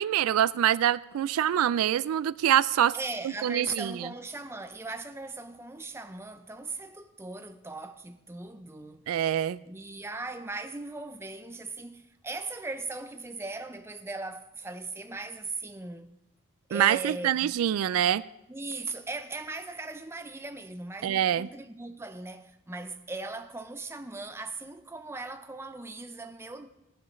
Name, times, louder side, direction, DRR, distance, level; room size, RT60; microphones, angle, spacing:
voice 1, 0.0-3.0 3.4-4.1 9.1-9.6 16.7-18.2 21.0-21.5, right 10 dB, 85° right, 0.3 m, -25 dB
voice 2, 2.9-9.0 9.7-16.1 16.7-17.5 18.5-26.7, right 3 dB, 10° right, 0.5 m, -39 dB
18.0 x 11.0 x 3.1 m
head